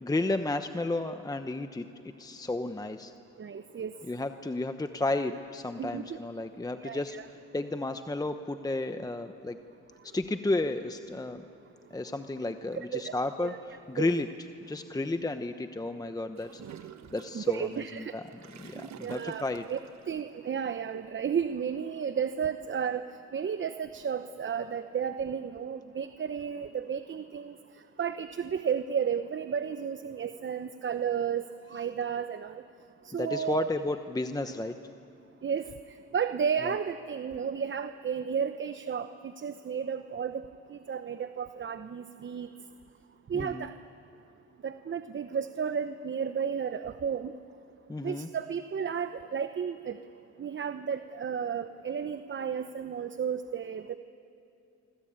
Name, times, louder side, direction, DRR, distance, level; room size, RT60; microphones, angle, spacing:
voice 1, 0.0-1.8 2.2-3.1 4.1-7.2 7.5-9.6 10.1-11.4 11.9-13.5 13.9-14.3 14.7-16.6 17.1-17.7 18.1-18.2 18.6-19.6 33.1-34.8 43.3-43.7 47.9-48.3, left 2 dB, 10° left, 8 dB, 0.9 m, -32 dB
voice 2, 3.4-3.9 5.8-6.2 6.8-7.2 12.8-13.1 13.4-13.6 14.0-14.1 17.3-18.2 19.0-19.4 19.7-19.8 20.1-23.0 23.3-27.5 28.0-32.6 33.0-33.7 35.4-35.7 36.1-40.4 40.7-42.5 43.3-43.7 44.6-47.3 48.0-50.0 50.4-54.0, right 7 dB, 40° right, 10 dB, 0.9 m, -33 dB
Gurgling / Toilet flush, 16.4-20.1, right 9 dB, 65° right, 1.2 m, -48 dB
26.0 x 25.5 x 8.9 m, 2.6 s
cardioid pair, 90°, 30 cm